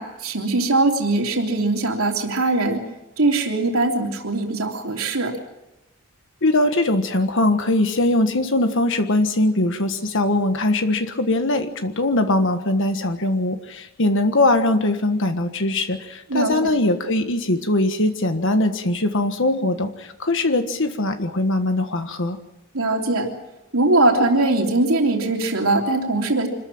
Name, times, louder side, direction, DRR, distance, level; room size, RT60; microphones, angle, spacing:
voice 1, 0.0-2.8 3.2-5.3 16.3-16.5 19.6-19.7 22.7-23.3 23.7-26.5, right 2 dB, 75° right, 1 dB, 3.3 m, -21 dB
voice 2, 6.4-22.4, left 2 dB, 60° left, 7 dB, 1.5 m, -21 dB
26.0 x 14.0 x 8.9 m, 0.97 s
head